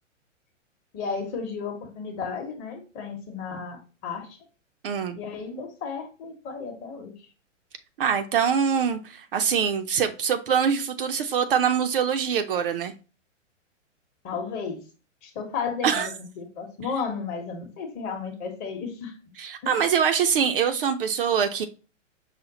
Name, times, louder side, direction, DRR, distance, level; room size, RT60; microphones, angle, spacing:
voice 1, 0.9-4.4 5.1-7.1 14.2-14.8 15.2-19.1 19.6-19.8, left 5 dB, 25° left, 0.9 m, -33 dB
voice 2, 4.8-5.2 8.0-12.9 15.8-16.1 19.4-21.7, right 7 dB, 45° right, 0.5 m, -24 dB
5.7 x 2.0 x 3.8 m
hypercardioid pair, 135°, 38 cm